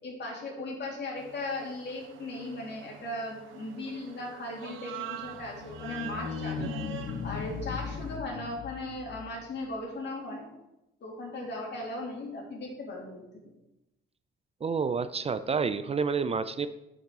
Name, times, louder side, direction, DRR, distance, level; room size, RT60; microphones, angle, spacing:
voice 1, 0.0-6.8 7.2-10.5 11.0-13.2, left 2 dB, 60° left, -1 dB, 3.0 m, -37 dB
sound 1, 1.2-8.2, right 10 dB, 85° right, 0.9 m, -45 dB
sound 2, 5.2-9.7, left 6 dB, 80° left, 0.7 m, -38 dB
voice 2, 14.6-16.7, right 5 dB, 30° right, 12 dB, 0.4 m, -29 dB
6.6 x 5.9 x 6.1 m, 0.90 s
cardioid pair, 90°, 20 cm